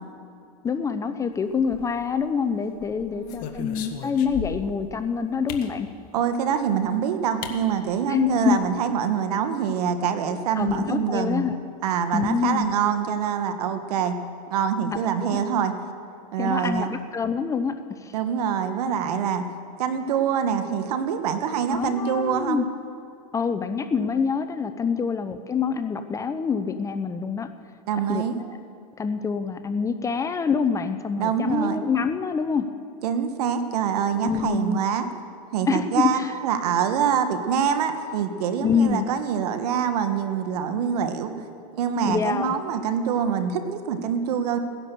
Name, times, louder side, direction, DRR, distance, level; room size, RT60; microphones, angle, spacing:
voice 1, 0.6-5.9 8.1-8.6 10.6-11.6 12.1-12.7 15.2-15.4 16.4-18.1 21.7-22.7 23.3-27.5 28.1-28.6 29.0-32.7 34.2-34.8 35.7-36.3 38.6-39.1 42.0-42.5, left 6 dB, 15° left, 10 dB, 0.6 m, -26 dB
sound 1, 1.6-2.3 2.8-4.8 5.5-5.7 6.8-6.9 7.4-7.6 7.9-8.0 8.3-8.7, left 9 dB, 45° left, 1.5 m, -37 dB
voice 2, 3.1-3.6 6.1-11.4 11.8-14.2 14.5-15.7 16.3-16.9 18.1-19.4 19.8-22.6 24.9-25.1 27.9-28.4 31.2-31.8 33.0-35.1 35.5-41.3 41.7-44.6, right 7 dB, 70° right, 8 dB, 1.5 m, -25 dB
17.0 x 10.5 x 6.8 m, 2.5 s
supercardioid pair, 130°, 20 cm